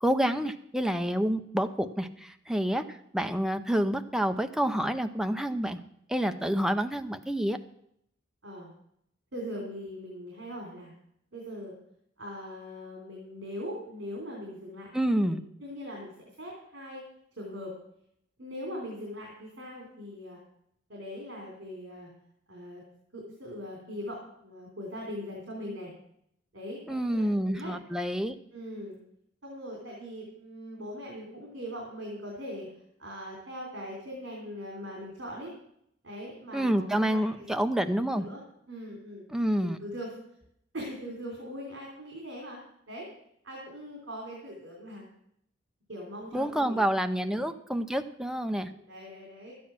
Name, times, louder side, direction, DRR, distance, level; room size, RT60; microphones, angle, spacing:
voice 1, 0.0-5.8 6.1-7.6 14.9-15.4 26.9-28.3 36.5-38.3 39.3-39.8 46.3-48.7, equal, 5° right, 7 dB, 0.6 m, -28 dB
voice 2, 9.3-10.9 11.3-11.7 12.2-14.9 15.2-15.3 15.6-16.1 16.4-17.0 17.4-17.7 18.4-20.4 20.9-22.1 22.5-22.8 23.1-25.9 26.5-26.8 27.1-27.7 28.5-29.0 29.4-32.7 33.0-35.5 36.0-37.4 37.8-37.9 38.2-38.4 38.7-39.3 39.6-40.1 40.7-42.6 42.9-43.1 43.4-45.1 45.9-46.9 48.7-49.5, equal, 70° right, -1 dB, 3.3 m, -40 dB
12.0 x 9.5 x 6.0 m, 0.73 s
head